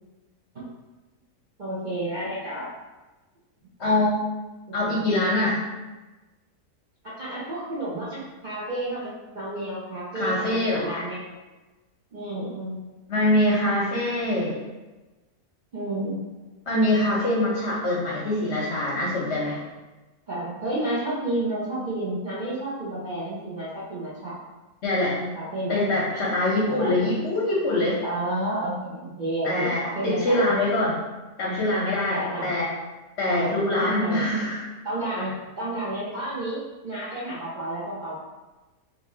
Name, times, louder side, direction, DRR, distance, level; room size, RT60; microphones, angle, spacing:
voice 1, 1.6-2.7 4.8-5.1 7.0-11.4 12.1-12.8 15.7-16.3 20.3-24.3 25.2-26.0 26.7-26.9 28.0-30.4 32.1-32.6 33.2-34.2 34.8-38.1, right 1 dB, 50° right, -9 dB, 0.5 m, -31 dB
voice 2, 3.8-4.2 4.7-5.7 10.1-11.0 13.1-14.6 16.7-19.6 24.8-25.2 25.7-28.0 29.4-31.0 31.4-32.7 33.2-34.6, left 1 dB, 60° left, -4 dB, 0.8 m, -24 dB
2.9 x 2.8 x 3.6 m, 1.1 s
omnidirectional pair, 1.7 m